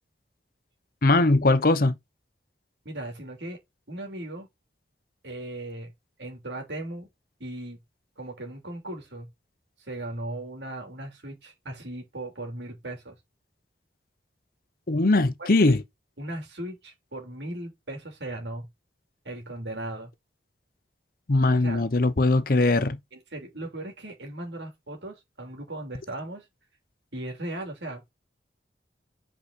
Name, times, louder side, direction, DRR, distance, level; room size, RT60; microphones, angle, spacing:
voice 1, 1.0-1.9 14.9-15.8 21.3-23.0, left 2 dB, 55° left, 0.8 m, -20 dB
voice 2, 2.8-3.6 3.9-4.5 5.2-5.9 6.2-7.1 7.4-7.8 8.2-9.3 9.8-13.2 15.4-15.7 16.2-18.7 19.2-20.1 21.5-21.8 23.1-26.4 27.1-28.1, right 1 dB, 80° right, 3.0 m, -37 dB
5.5 x 4.9 x 4.0 m
head